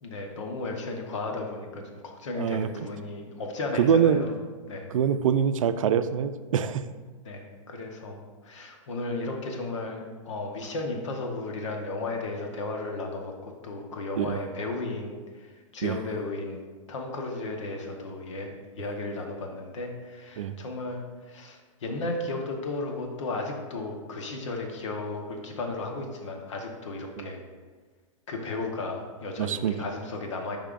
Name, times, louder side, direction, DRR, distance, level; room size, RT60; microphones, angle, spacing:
voice 1, 0.0-4.3 4.7-4.9 7.2-15.5 15.7-16.6 16.9-27.4 28.3-30.6, left 2 dB, 60° left, 2 dB, 1.1 m, -34 dB
voice 2, 2.4-2.7 3.8-4.3 4.9-6.8 14.2-14.4 15.8-16.0 20.4-20.5 27.2-27.3 29.4-29.7, right 8 dB, 75° right, 11 dB, 0.5 m, -24 dB
8.6 x 5.5 x 2.5 m, 1.4 s
hypercardioid pair, 165°, 17 cm